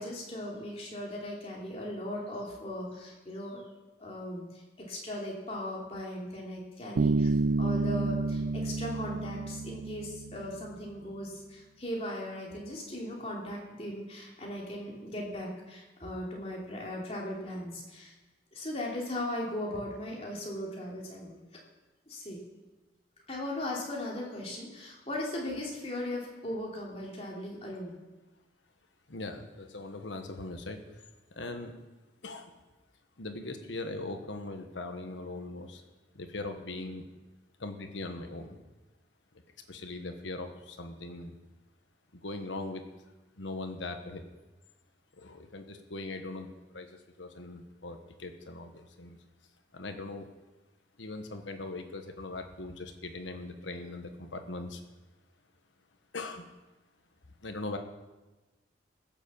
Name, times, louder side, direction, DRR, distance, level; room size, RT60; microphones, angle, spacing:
voice 1, 0.0-3.6 4.0-4.6 4.9-7.3 7.6-18.1 18.5-21.3 22.1-22.4 23.3-28.0, left 1 dB, 35° left, -3 dB, 2.9 m, -38 dB
Bass guitar, 7.0-10.7, right 3 dB, 75° right, 0.5 m, -29 dB
voice 2, 29.1-31.0 31.3-31.7 32.2-32.5 33.2-35.8 36.1-37.1 37.6-38.6 39.7-41.3 42.1-42.8 43.4-44.3 45.2-49.2 49.7-50.3 51.0-54.8 56.1-56.5 57.4-57.8, left 2 dB, 85° left, 6 dB, 1.4 m, -40 dB
16.0 x 7.3 x 7.2 m, 1.1 s
head